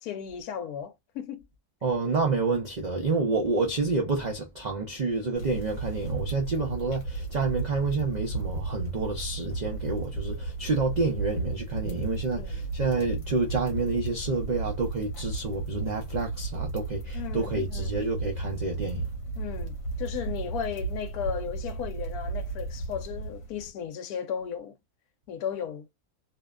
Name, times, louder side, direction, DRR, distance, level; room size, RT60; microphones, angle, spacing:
voice 1, 0.0-1.4 12.4-12.7 17.1-18.0 19.4-24.8 25.3-25.9, left 8 dB, 80° left, 1.1 m, -35 dB
voice 2, 1.8-19.0, right 3 dB, 70° right, 0.4 m, -29 dB
sound 1, 5.4-23.7, right 3 dB, 60° left, 1.1 m, -34 dB
2.7 x 2.1 x 2.2 m
omnidirectional pair, 1.6 m